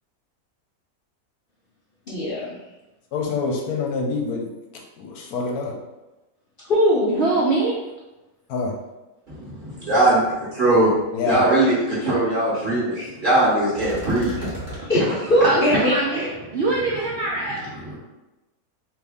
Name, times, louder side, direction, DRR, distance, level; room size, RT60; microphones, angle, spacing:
voice 1, 2.1-2.6 6.6-7.2 14.9-16.3, left 1 dB, 50° left, -7 dB, 0.7 m, -20 dB
voice 2, 3.1-4.5 5.0-5.8 8.5-8.7 11.1-11.4, left 4 dB, 80° left, 1 dB, 1.1 m, -26 dB
voice 3, 7.1-7.8 13.0-13.1 14.8-14.9 15.4-16.3 16.5-17.6, right 3 dB, 70° right, -4 dB, 0.6 m, -23 dB
voice 4, 9.3-10.9 11.2-14.8 15.4-15.5 16.5-16.6 17.6-18.0, right 1 dB, 35° right, -8 dB, 1.1 m, -21 dB
sound 1, 10.3-10.4 10.7-11.0 11.3-11.4 13.8-14.8, right 1 dB, 10° right, 0.9 m, -35 dB
2.9 x 2.6 x 3.4 m, 1.0 s
omnidirectional pair, 1.6 m